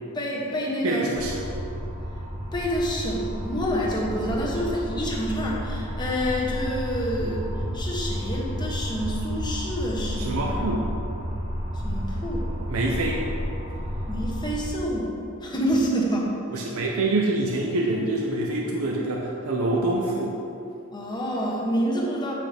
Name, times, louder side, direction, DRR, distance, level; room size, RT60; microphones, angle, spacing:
voice 1, 0.1-1.1 2.5-10.4 11.8-12.5 14.1-16.6 20.9-22.3, equal, 20° left, -4 dB, 1.2 m, -28 dB
voice 2, 0.8-1.5 7.2-7.3 10.2-10.9 12.7-13.3 16.5-20.4, right 2 dB, 80° right, -1 dB, 0.7 m, -26 dB
sound 1, 1.1-14.7, equal, 30° right, 1.2 m, -31 dB
8.5 x 5.9 x 3.4 m, 2.8 s
head